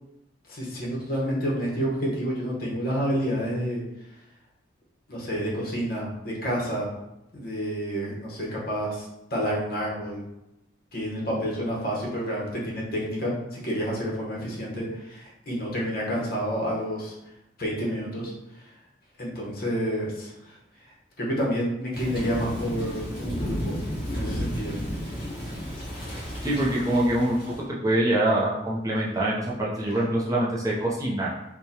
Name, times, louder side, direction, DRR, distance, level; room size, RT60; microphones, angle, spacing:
voice 1, 0.5-3.8 5.1-6.9 7.3-10.2 10.9-17.1 17.6-18.7 19.2-20.6 21.2-23.8 24.1-24.7, equal, 55° left, -4 dB, 1.1 m, -29 dB
Thunder / Rain, 21.9-27.6, equal, 25° left, 1.3 m, -33 dB
voice 2, 26.4-27.5 27.8-31.4, right 1 dB, 20° right, -5 dB, 0.6 m, -24 dB
4.6 x 2.2 x 2.8 m, 0.89 s
head